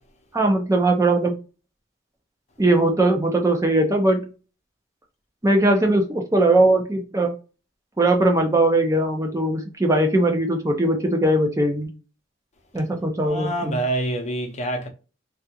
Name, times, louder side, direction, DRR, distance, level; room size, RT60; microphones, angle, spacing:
voice 1, 0.3-1.3 2.6-4.3 5.4-7.3 8.0-11.9 12.7-13.8, right 1 dB, 15° right, 0.5 m, -20 dB
voice 2, 13.2-14.9, right 1 dB, 35° left, 0.8 m, -26 dB
3.3 x 2.4 x 2.8 m
head